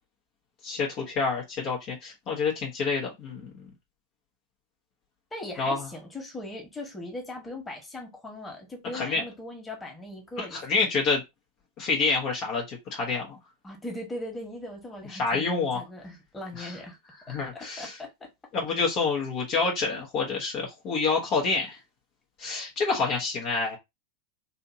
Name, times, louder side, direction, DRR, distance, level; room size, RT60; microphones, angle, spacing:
voice 1, 0.6-3.5 5.6-5.9 8.9-9.2 10.4-11.2 11.8-13.4 15.1-15.8 16.6-16.7 17.3-18.0 18.5-21.8 22.4-23.8, left 4 dB, 45° left, 1.1 m, -28 dB
voice 2, 5.3-10.6 13.6-16.9 17.5-18.1, left 1 dB, 15° left, 1.5 m, -39 dB
3.4 x 2.7 x 2.8 m
figure-of-eight pair, 95°, 0 cm